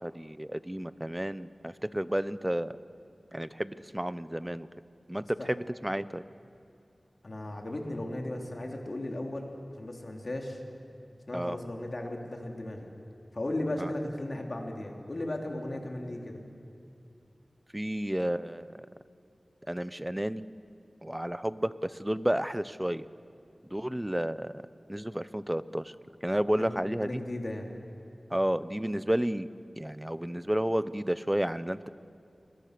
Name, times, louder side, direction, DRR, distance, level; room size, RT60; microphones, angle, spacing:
voice 1, 0.0-2.7 3.3-4.7 5.1-6.2 11.3-11.6 13.8-13.9 17.7-18.8 19.7-20.4 21.0-23.1 23.7-24.6 24.9-25.9 26.2-27.2 28.3-29.5 29.8-31.9, equal, 10° right, 15 dB, 0.7 m, -31 dB
voice 2, 7.2-9.5 9.8-10.6 11.3-12.9 13.3-16.4 26.6-27.7, left 1 dB, 60° left, 1 dB, 3.4 m, -36 dB
30.0 x 21.5 x 6.8 m, 2.5 s
wide cardioid pair, 50°, 0 cm